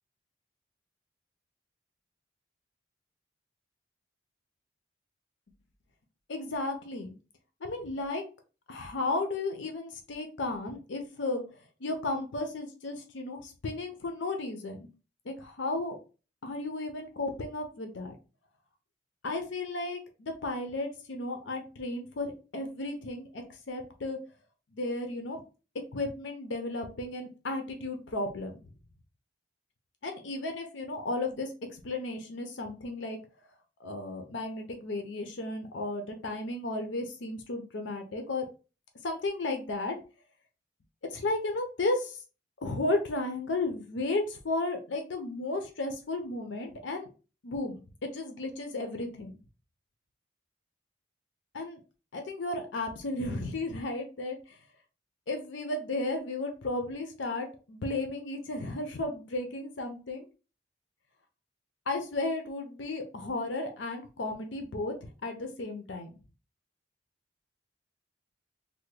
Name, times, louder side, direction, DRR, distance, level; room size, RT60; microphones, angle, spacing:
voice 1, 6.3-7.1 7.6-8.2 8.7-11.4 11.8-14.9 15.3-16.0 16.4-18.1 19.2-24.2 24.7-25.4 25.9-28.6 30.0-31.5 31.8-33.2 33.8-38.5 39.0-40.0 41.1-42.2 42.6-47.1 47.4-49.4 51.5-51.8 52.1-54.4 55.3-60.3 61.9-64.9 65.2-66.1, left 2 dB, 75° left, 5 dB, 0.6 m, -34 dB
3.4 x 2.1 x 3.2 m, 0.33 s
head